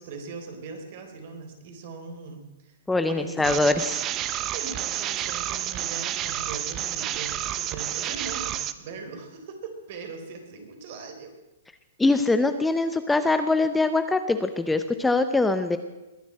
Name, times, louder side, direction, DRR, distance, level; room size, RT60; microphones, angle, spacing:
voice 1, 0.0-2.8 3.0-3.8 4.2-11.3, right 4 dB, 50° right, 5 dB, 3.8 m, -40 dB
voice 2, 2.9-4.0 12.0-15.8, left 3 dB, 5° left, 9 dB, 0.7 m, -23 dB
sound 1, 3.4-8.7, right 12 dB, 25° right, 0.8 m, -30 dB
21.5 x 8.2 x 7.7 m, 1.0 s
hypercardioid pair, 140°, 0 cm